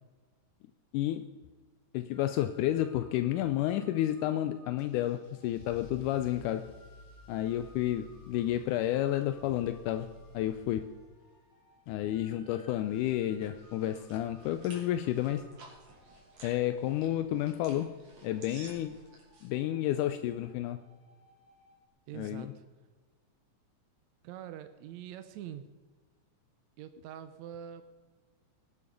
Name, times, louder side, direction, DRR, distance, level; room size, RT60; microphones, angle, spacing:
voice 1, 0.9-1.2 1.9-6.7 7.3-10.9 11.9-15.5 16.4-19.0 19.4-20.9 22.1-22.5, left 13 dB, 85° left, 2.1 m, -31 dB
sound 1, 2.1-21.9, equal, 10° left, 1.4 m, -62 dB
Car / Engine starting / Accelerating revving vroom, 4.8-11.3, left 1 dB, 30° left, 3.8 m, -54 dB
sound 2, 12.4-19.5, right 2 dB, 60° right, 4.3 m, -55 dB
voice 2, 22.1-22.6 24.2-25.7 26.8-27.8, right 10 dB, 75° right, 1.8 m, -44 dB
19.5 x 8.8 x 5.2 m
omnidirectional pair, 3.7 m